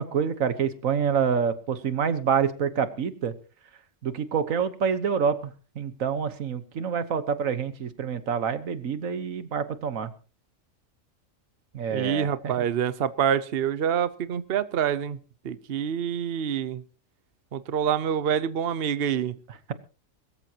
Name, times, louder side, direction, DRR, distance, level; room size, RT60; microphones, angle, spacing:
voice 1, 0.0-3.3 4.0-10.1 11.7-12.6, right 7 dB, 90° right, 12 dB, 1.6 m, -27 dB
voice 2, 11.9-15.2 15.4-16.8 17.5-19.3, right 8 dB, 55° right, 14 dB, 0.9 m, -26 dB
22.0 x 14.0 x 2.9 m, 0.35 s
omnidirectional pair, 1.3 m